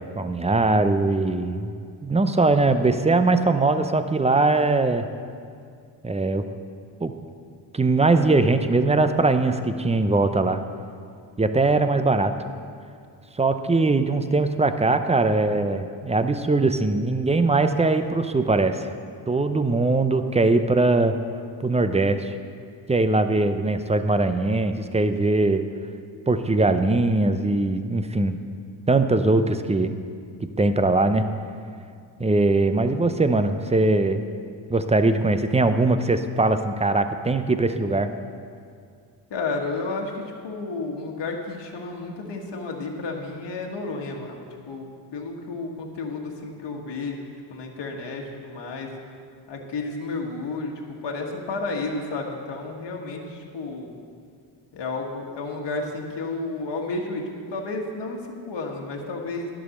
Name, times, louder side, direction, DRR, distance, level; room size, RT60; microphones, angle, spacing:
voice 1, 0.2-1.7 2.0-5.1 6.0-6.5 7.0-7.1 7.7-10.6 11.4-12.3 13.4-18.9 19.3-21.2 21.6-22.3 22.9-25.6 26.3-28.4 28.9-29.9 30.4-31.3 32.2-34.2 34.7-38.1, right 2 dB, 15° right, 9 dB, 0.6 m, -21 dB
voice 2, 39.3-44.9 45.1-47.2 47.5-48.9 49.5-50.7 51.0-54.0 54.7-59.5, left 3 dB, 55° left, 0 dB, 1.6 m, -32 dB
11.0 x 6.3 x 6.5 m, 2.2 s
cardioid pair, 70°, 49 cm